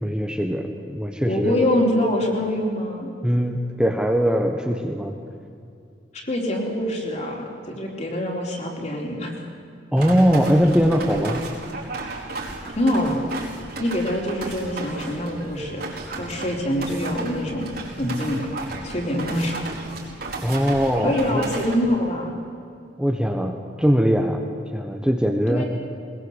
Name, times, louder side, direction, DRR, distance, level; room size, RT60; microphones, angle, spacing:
voice 1, 0.0-1.6 3.2-5.1 9.9-11.4 20.4-21.4 23.0-23.5 23.8-24.4 24.7-25.6, equal, 5° right, 2 dB, 1.3 m, -21 dB
voice 2, 1.2-3.1 6.1-9.3 12.8-13.2 13.8-15.8 16.2-17.7 18.0-18.5 18.8-19.6 21.0-22.4 25.5-25.6, left 1 dB, 40° left, 0 dB, 4.3 m, -25 dB
sound 1, 10.0-21.8, right 2 dB, 60° right, 4.8 m, -34 dB
22.0 x 20.5 x 8.2 m, 2.5 s
head